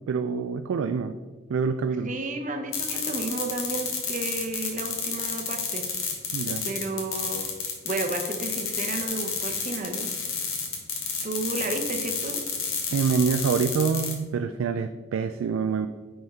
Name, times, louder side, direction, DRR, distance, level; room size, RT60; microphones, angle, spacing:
voice 1, 0.1-1.1 1.5-2.2 6.3-6.7 12.9-15.9, right 6 dB, 75° right, 9 dB, 0.3 m, -26 dB
voice 2, 2.1-5.9 6.6-7.4 7.8-10.1 11.2-12.4, right 2 dB, 40° right, 5 dB, 0.7 m, -32 dB
sound 1, 2.7-14.1, left 6 dB, 85° left, 1.4 m, -30 dB
9.5 x 4.3 x 3.6 m, 1.3 s
head